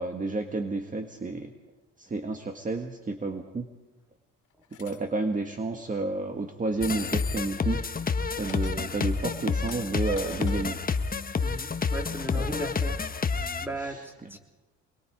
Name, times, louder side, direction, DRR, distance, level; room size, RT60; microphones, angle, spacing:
voice 1, 0.0-1.5 2.0-3.7 4.8-7.8 8.4-10.8 12.3-12.6 13.8-14.4, right 3 dB, 25° right, 5 dB, 1.7 m, -31 dB
sound 1, 4.7-5.0 6.8-7.8 8.5-8.8 9.3-10.6, left 9 dB, 80° left, 2.4 m, -42 dB
sound 2, 6.8-13.7, left 5 dB, 30° left, 1.2 m, -29 dB
voice 2, 11.4-13.0 13.6-14.0 14.3-14.4, right 1 dB, 5° right, 3 dB, 3.4 m, -36 dB
25.0 x 22.0 x 4.9 m, 1.1 s
cardioid pair, 90°, 30 cm